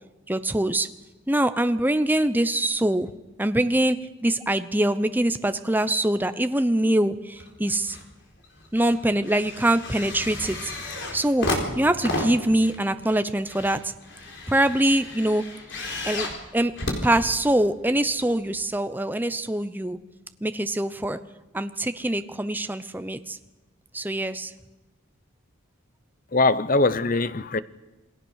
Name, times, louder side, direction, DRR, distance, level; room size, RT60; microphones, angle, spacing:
voice 1, 0.3-0.9 1.3-3.1 3.4-8.0 8.7-10.7 11.1-13.9 14.5-15.4 16.0-16.7 17.0-20.0 20.4-21.2 21.5-23.4 23.9-24.5, right 1 dB, 10° right, 0.7 m, -24 dB
sound 1, 7.4-8.1 8.4-17.8 18.6-18.7, left 2 dB, 60° left, 4.1 m, -33 dB
voice 2, 26.3-27.6, left 3 dB, 40° left, 0.7 m, -21 dB
28.0 x 19.5 x 6.5 m
head